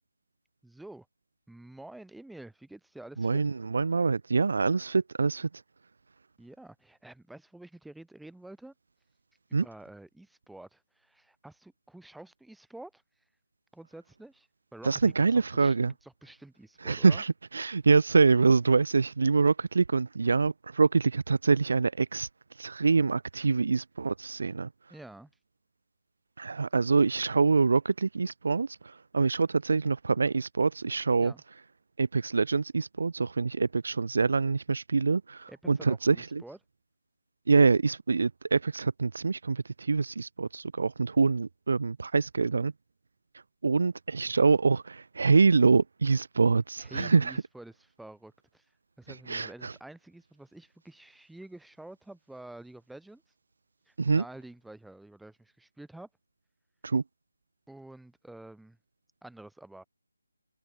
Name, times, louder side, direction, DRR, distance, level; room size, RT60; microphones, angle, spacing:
voice 1, 0.6-1.1 1.5-3.4 6.4-8.7 9.5-13.0 13.7-15.7 16.0-17.2 24.9-25.3 31.2-31.4 35.5-36.6 46.8-48.7 49.0-53.2 53.9-56.1 57.7-58.8 59.2-59.8, right 1 dB, ahead, 0.7 m, -49 dB
voice 2, 3.2-5.5 9.5-9.7 14.8-15.9 16.8-22.3 22.6-24.7 26.4-31.3 32.0-36.4 37.5-42.7 43.6-47.3 49.3-49.7 54.0-54.2 56.8-57.0, right 4 dB, 50° right, 0.4 m, -25 dB
figure-of-eight pair, 150°, 0 cm